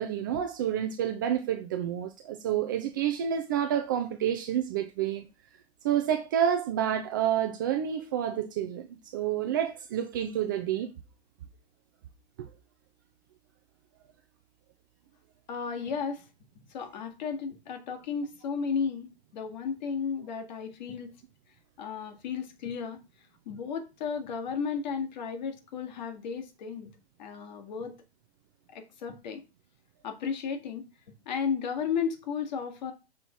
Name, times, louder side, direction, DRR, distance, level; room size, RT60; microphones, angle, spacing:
voice 1, 0.0-5.3 5.8-10.9, right 10 dB, 20° right, 0.4 m, -29 dB
voice 2, 15.5-16.3 16.7-21.1 21.8-23.0 23.5-26.9 27.2-28.0 28.7-29.4 30.0-30.8 31.3-32.9, left 6 dB, 45° left, 1.8 m, -34 dB
6.3 x 3.8 x 5.7 m
figure-of-eight pair, 120°, 33 cm